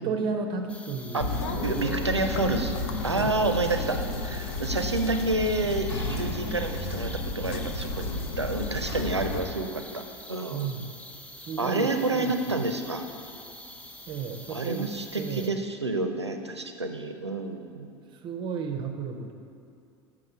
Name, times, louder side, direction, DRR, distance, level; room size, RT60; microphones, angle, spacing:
voice 1, 0.0-1.7 3.1-3.4 10.5-10.9 11.4-12.6 14.1-15.5 18.2-19.3, right 5 dB, 35° right, 5 dB, 0.6 m, -33 dB
sound 1, 0.7-15.5, left 1 dB, 10° left, 0.6 m, -46 dB
voice 2, 1.1-2.7 3.0-10.0 10.3-10.7 11.6-13.1 14.5-17.9, right 2 dB, 90° right, 6 dB, 0.5 m, -29 dB
sound 2, 1.2-9.4, left 2 dB, 60° left, 0.7 m, -32 dB
sound 3, 5.9-7.2 7.9-8.0, equal, 80° left, 1.9 m, -41 dB
6.4 x 5.9 x 6.0 m, 2.5 s
figure-of-eight pair, 80°, 14 cm